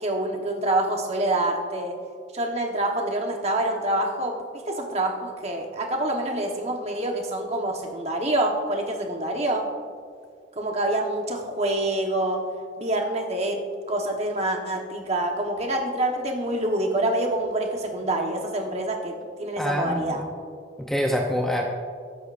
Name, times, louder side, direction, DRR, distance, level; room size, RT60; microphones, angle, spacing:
voice 1, 0.0-2.0 2.3-9.7 10.6-12.4 12.8-20.2, right 1 dB, 35° right, 2 dB, 1.2 m, -26 dB
voice 2, 19.6-20.2 20.8-21.7, equal, ahead, 0 dB, 0.6 m, -25 dB
20.0 x 10.0 x 2.6 m, 2.2 s
head